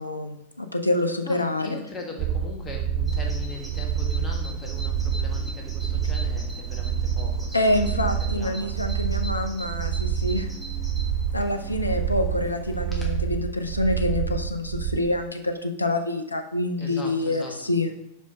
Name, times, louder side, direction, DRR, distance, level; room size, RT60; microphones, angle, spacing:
voice 1, 0.0-1.7 7.5-10.5 11.3-17.9, left 1 dB, 80° left, 7 dB, 0.5 m, -26 dB
voice 2, 1.2-8.7 16.8-17.5, left 1 dB, 20° left, 0 dB, 1.7 m, -40 dB
sound 1, 2.2-15.0, right 8 dB, 45° right, 0.5 m, -27 dB
Bird vocalization bird call bird song, 3.1-13.2, right 1 dB, 5° right, 1.6 m, -42 dB
5.3 x 5.2 x 5.1 m, 0.77 s
figure-of-eight pair, 90°, 0 cm